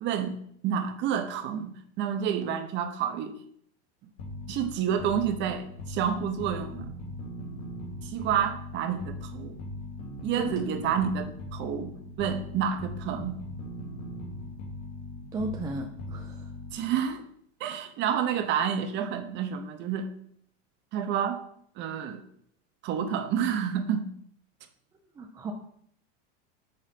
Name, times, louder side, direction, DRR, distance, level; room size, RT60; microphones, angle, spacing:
voice 1, 0.0-0.4 0.6-3.4 4.5-6.9 8.0-9.6 10.2-11.9 12.2-13.4 16.7-17.2 17.6-20.1 20.9-21.4 21.8-22.2 22.8-24.1, right 8 dB, 35° right, 0.7 m, -29 dB
sound 1, 4.2-17.1, left 1 dB, 70° left, 1.8 m, -40 dB
voice 2, 15.3-16.5 25.2-25.5, right 2 dB, 10° right, 0.3 m, -34 dB
5.1 x 3.9 x 5.7 m
supercardioid pair, 145°, 33 cm